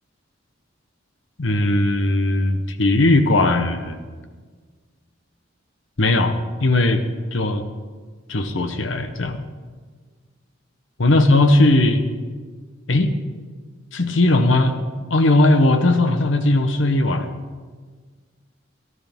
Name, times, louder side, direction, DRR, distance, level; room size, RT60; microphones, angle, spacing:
voice 1, 1.4-4.0 6.0-7.0 7.3-7.6 8.3-9.5 11.0-12.0 12.9-13.1 13.9-14.8 15.1-17.3, left 2 dB, 75° left, 8 dB, 1.0 m, -18 dB
18.0 x 12.5 x 3.6 m, 1.5 s
head